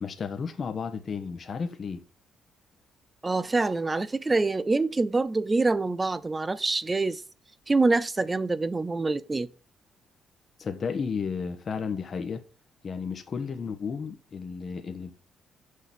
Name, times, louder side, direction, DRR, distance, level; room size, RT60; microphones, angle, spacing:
voice 1, 0.0-2.0 10.6-12.4 12.8-15.1, left 5 dB, 45° left, 1.2 m, -33 dB
voice 2, 3.2-7.2 7.7-9.5, right 3 dB, 20° right, 0.7 m, -25 dB
6.5 x 5.8 x 7.1 m
cardioid pair, 90°, 0 cm